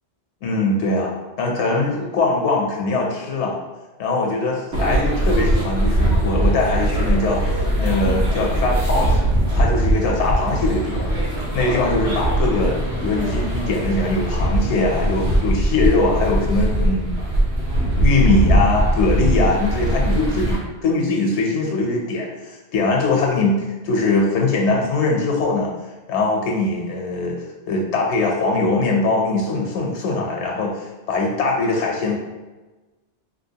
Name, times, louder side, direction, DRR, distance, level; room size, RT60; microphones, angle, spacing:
voice 1, 0.4-3.6 4.0-9.2 9.5-11.1 11.5-12.8 13.0-17.1 18.0-25.7 26.1-27.4 27.7-32.2, left 3 dB, 80° left, 0 dB, 0.9 m, -21 dB
sound 1, 4.7-20.6, right 1 dB, 75° right, 1.1 m, -20 dB
3.1 x 2.7 x 2.7 m, 1.2 s
omnidirectional pair, 1.2 m